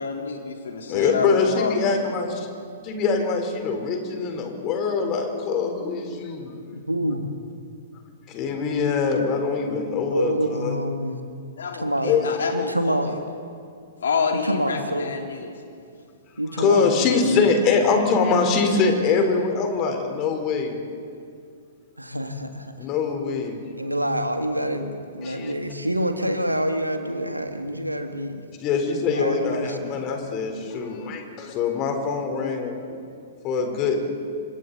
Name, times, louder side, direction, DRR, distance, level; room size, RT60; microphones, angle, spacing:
voice 1, 0.0-1.8 11.6-13.1 14.0-15.5, left 5 dB, 60° left, 1 dB, 3.7 m, -28 dB
voice 2, 0.9-2.5 2.8-6.5 8.3-10.8 12.0-12.3 16.6-20.8 22.8-23.6 25.2-25.5 28.6-32.7 33.4-34.0, left 5 dB, 30° left, 4 dB, 3.9 m, -23 dB
voice 3, 6.7-7.3 10.1-11.2 11.7-13.2 14.4-15.1 16.4-17.4 19.0-19.2 22.0-22.7 23.8-28.4 29.1-29.9, equal, 85° right, 6 dB, 2.1 m, -27 dB
29.5 x 26.0 x 4.1 m, 2.3 s
figure-of-eight pair, 110°, 0 cm